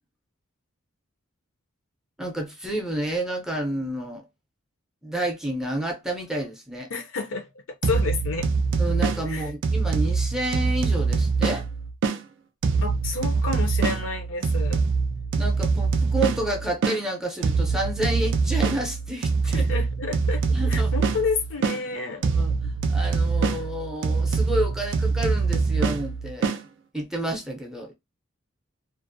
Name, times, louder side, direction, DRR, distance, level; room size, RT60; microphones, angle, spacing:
voice 1, 2.2-4.2 5.0-6.9 8.8-11.6 15.4-19.7 20.5-20.9 22.1-22.5 22.9-26.6 26.9-27.9, right 1 dB, ahead, 0.5 m, -30 dB
voice 2, 6.9-7.5 7.8-8.5 9.3-9.5 12.8-14.8 19.5-20.4 20.7-22.2, left 4 dB, 65° left, 0.6 m, -30 dB
sound 1, 7.8-12.2 12.6-17.0 17.4-21.8 22.2-26.6, right 4 dB, 60° right, 0.4 m, -24 dB
2.5 x 2.0 x 2.5 m
head